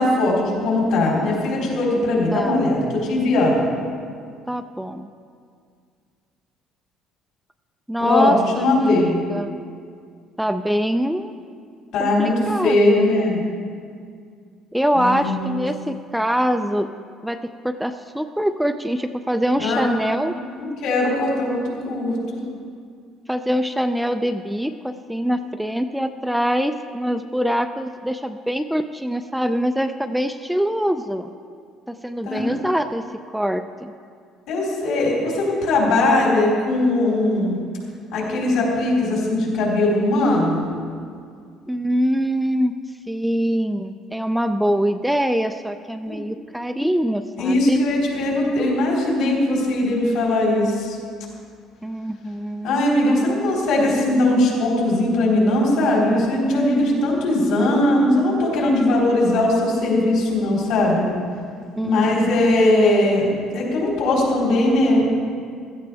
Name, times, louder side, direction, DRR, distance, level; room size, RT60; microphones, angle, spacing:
voice 1, 0.0-3.7 8.0-9.2 11.9-13.4 14.9-15.6 19.6-19.8 20.2-20.3 20.5-22.2 32.2-32.6 34.5-37.5 38.1-40.6 46.1-46.2 47.4-51.0 52.6-61.1 61.8-63.2 63.5-65.1, left 1 dB, 70° left, -4 dB, 4.0 m, -19 dB
voice 2, 2.3-2.7 4.5-5.1 7.9-9.5 10.4-11.3 12.0-13.1 14.7-16.9 17.2-17.4 17.6-20.4 23.3-31.3 31.9-33.1 33.3-33.9 41.7-42.7 43.1-47.8 51.8-52.8 61.8-62.0, equal, ahead, 8 dB, 0.3 m, -24 dB
16.0 x 13.0 x 3.4 m, 2.2 s
cardioid pair, 160°, 0 cm